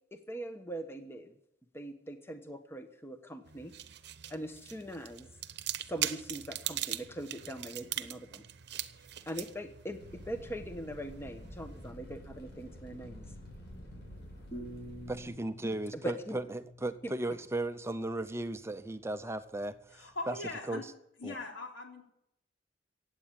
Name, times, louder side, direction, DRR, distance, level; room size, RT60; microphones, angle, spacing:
voice 1, 0.1-1.3 1.7-3.7 4.3-5.3 5.9-8.4 9.0-13.2 15.9-16.4, right 1 dB, 15° left, 7 dB, 1.1 m, -41 dB
sound 1, 3.5-11.9, right 12 dB, 60° right, 0.9 m, -41 dB
Fire, 10.0-15.3, equal, 60° left, 7.3 m, -49 dB
sound 2, 14.5-17.5, equal, 35° left, 5.6 m, -47 dB
voice 2, 15.1-20.4 20.7-20.8 21.2-21.3, right 2 dB, 15° right, 10 dB, 0.6 m, -36 dB
voice 3, 19.9-20.9 21.2-22.0, left 3 dB, 75° left, 2 dB, 3.9 m, -40 dB
16.0 x 9.0 x 8.8 m, 0.79 s
head